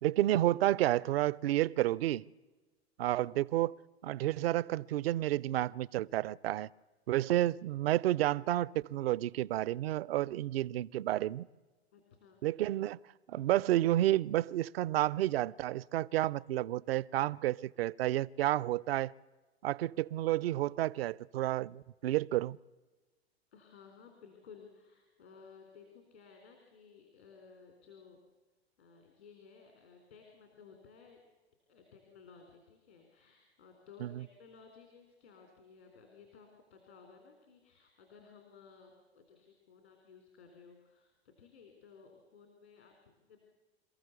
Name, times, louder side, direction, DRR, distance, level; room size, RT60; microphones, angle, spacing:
voice 1, 0.0-2.3 3.0-3.8 4.0-6.7 7.1-11.5 12.4-13.0 13.3-19.1 19.6-22.6 34.0-34.2, right 14 dB, 65° right, 0.6 m, -30 dB
voice 2, 11.9-12.6 23.5-28.2 28.8-31.2 31.7-43.4, left 5 dB, 80° left, 3.7 m, -57 dB
26.5 x 14.5 x 8.2 m
figure-of-eight pair, 90°, 32 cm